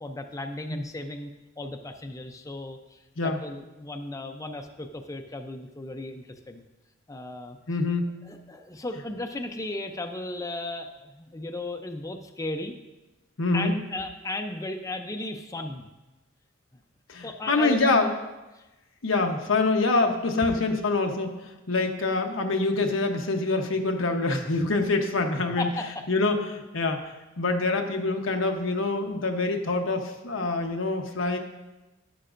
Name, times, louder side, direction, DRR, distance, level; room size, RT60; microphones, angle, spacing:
voice 1, 0.0-1.3 1.6-6.6 7.1-7.6 8.2-12.7 13.5-15.9 17.2-18.1 18.5-18.6 25.6-26.0, left 2 dB, 15° left, 5 dB, 0.5 m, -35 dB
voice 2, 7.7-8.1 13.4-13.8 17.1-18.1 19.0-25.7 26.1-27.1 27.4-31.4, left 3 dB, 90° left, 4 dB, 1.0 m, -25 dB
11.0 x 10.5 x 2.6 m, 1.0 s
head